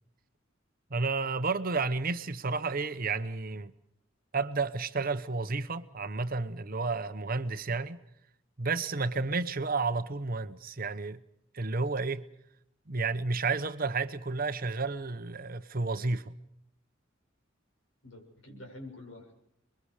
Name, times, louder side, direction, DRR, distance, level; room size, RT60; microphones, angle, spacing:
voice 1, 0.9-3.7 4.3-8.0 8.6-11.2 11.5-12.2 12.9-16.3, right 4 dB, 45° right, 1.1 m, -31 dB
voice 2, 18.0-19.3, left 1 dB, 75° left, 7.5 m, -47 dB
30.0 x 22.5 x 5.0 m
head